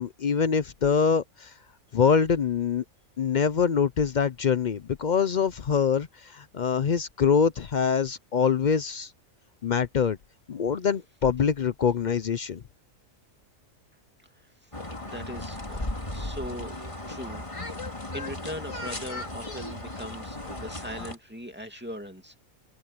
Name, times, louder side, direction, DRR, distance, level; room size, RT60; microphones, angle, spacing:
voice 1, 0.0-1.5 1.9-2.8 3.2-9.1 9.6-10.2 10.5-12.6, left 6 dB, 55° left, 0.5 m, -24 dB
voice 2, 14.2-14.7 15.0-16.7 17.0-17.5 18.1-22.4, equal, 5° right, 2.5 m, -40 dB
sound 1, 14.7-21.2, left 2 dB, 25° left, 2.3 m, -36 dB
omnidirectional pair, 1.4 m